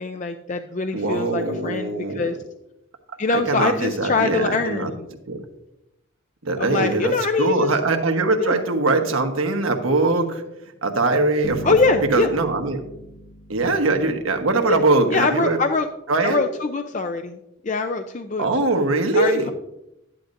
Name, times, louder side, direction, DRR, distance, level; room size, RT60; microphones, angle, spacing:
voice 1, 0.0-2.4 3.2-5.1 6.6-7.7 8.4-8.6 11.6-12.3 14.7-14.8 15.1-15.9 16.2-17.4 17.6-18.5 19.1-19.5, left 3 dB, 35° left, 7 dB, 0.4 m, -23 dB
voice 2, 0.9-2.3 3.5-4.9 5.3-5.4 6.4-10.4 10.8-11.8 12.1-12.8 13.5-15.6 16.1-16.4 18.4-19.5, right 3 dB, 85° right, 4 dB, 1.3 m, -21 dB
Bass guitar, 11.4-14.5, right 1 dB, 90° left, 1.1 m, -38 dB
13.0 x 10.0 x 2.6 m, 0.87 s
head